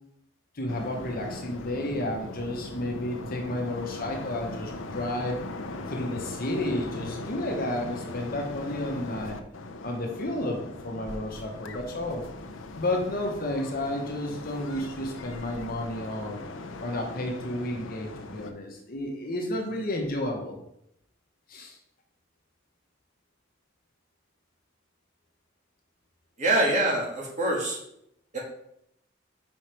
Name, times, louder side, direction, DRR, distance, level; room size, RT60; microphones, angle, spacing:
voice 1, 0.5-5.4 5.9-9.4 9.8-12.2 12.8-16.4 16.8-20.6 21.5-21.8, left 1 dB, 50° left, 1 dB, 1.1 m, -32 dB
sound 1, 0.7-18.5, left 2 dB, 85° left, 0.7 m, -39 dB
voice 2, 26.4-27.8 28.3-28.4, right 1 dB, 40° right, -3 dB, 1.8 m, -25 dB
5.5 x 4.9 x 4.5 m, 0.77 s
head